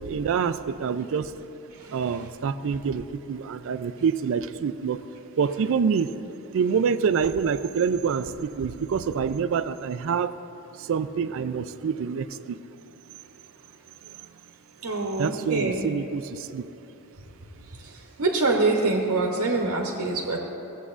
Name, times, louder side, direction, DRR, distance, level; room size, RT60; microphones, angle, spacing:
voice 1, 0.0-1.3 1.9-5.0 5.4-6.2 6.5-10.3 10.7-12.6 14.0-14.2 15.2-16.7, right 6 dB, 60° right, 12 dB, 0.3 m, -26 dB
voice 2, 14.8-15.8 17.8-20.4, right 3 dB, 90° right, -1 dB, 0.9 m, -25 dB
15.5 x 8.1 x 2.5 m, 3.0 s
head